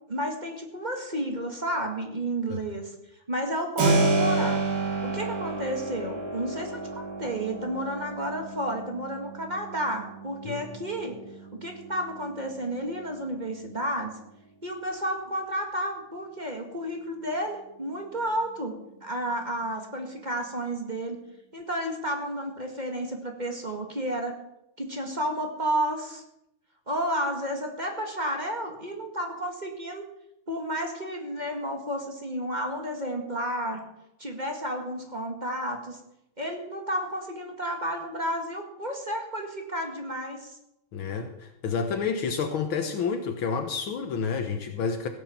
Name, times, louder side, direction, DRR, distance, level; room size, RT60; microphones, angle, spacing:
voice 1, 0.0-2.9 3.3-4.6 5.0-11.2 11.5-14.2 14.6-21.2 21.5-24.4 24.8-26.2 26.9-30.0 30.5-33.8 34.2-36.0 36.4-40.6, right 1 dB, 20° right, 2 dB, 1.9 m, -31 dB
Keyboard (musical), 3.8-14.5, right 3 dB, 85° right, 3.3 m, -31 dB
voice 2, 40.9-45.1, left 5 dB, 70° left, 5 dB, 1.9 m, -29 dB
16.5 x 7.6 x 7.2 m, 0.84 s
omnidirectional pair, 2.4 m